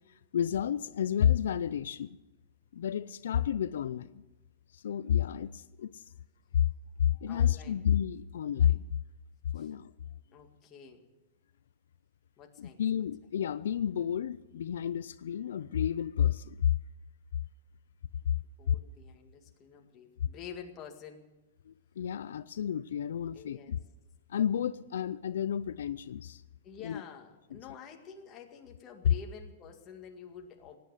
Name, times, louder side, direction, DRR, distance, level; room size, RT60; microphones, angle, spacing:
voice 1, 0.3-2.2 2.7-4.2 4.7-6.0 6.5-6.6 7.0-8.9 9.5-9.9 12.6-16.7 21.7-23.8 24.3-26.4 26.8-27.0, left 9 dB, 85° left, 15 dB, 0.5 m, -30 dB
voice 2, 7.3-7.8 9.6-9.7 10.3-11.0 12.4-12.8 18.6-21.3 23.3-23.7 26.6-30.8, left 7 dB, 25° left, 3 dB, 1.9 m, -49 dB
18.0 x 9.5 x 8.0 m, 1.0 s
supercardioid pair, 155°, 0 cm